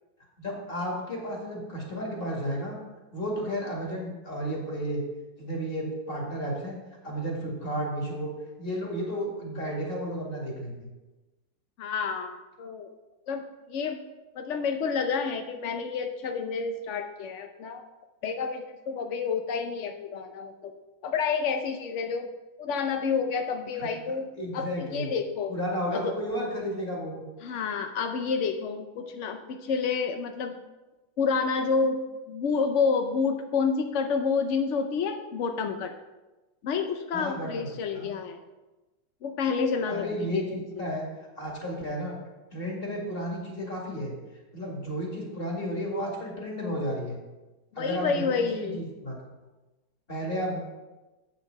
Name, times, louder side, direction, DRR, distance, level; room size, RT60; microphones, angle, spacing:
voice 1, 0.4-2.8 3.1-5.0 5.4-6.8 7.0-8.3 8.6-10.9 23.8-25.1 25.5-27.2 37.1-37.7 37.9-38.1 39.9-41.1 41.4-42.2 42.5-44.2 44.5-47.2 47.7-49.2 50.1-50.6, equal, 30° left, -2 dB, 2.3 m, -33 dB
voice 2, 11.8-12.9 13.3-13.4 13.7-14.0 14.3-17.8 18.2-20.7 21.0-22.3 22.6-24.3 24.5-25.5 25.9-26.1 27.4-30.6 31.2-32.0 32.3-35.9 36.6-38.4 39.2-40.8 47.7-48.8, left 5 dB, 75° left, 6 dB, 0.6 m, -29 dB
8.0 x 6.9 x 5.2 m, 1.1 s
omnidirectional pair, 2.0 m